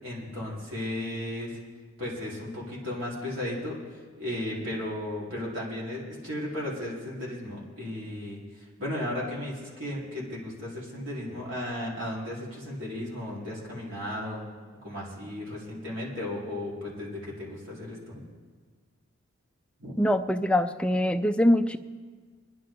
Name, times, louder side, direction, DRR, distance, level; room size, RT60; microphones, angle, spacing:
voice 1, 0.0-1.6 2.0-3.8 4.2-14.4 14.8-18.2 19.8-19.9, left 1 dB, 65° right, -5 dB, 4.2 m, -35 dB
voice 2, 20.0-21.8, left 1 dB, 5° left, 8 dB, 0.4 m, -23 dB
24.0 x 11.0 x 3.9 m, 1.5 s
head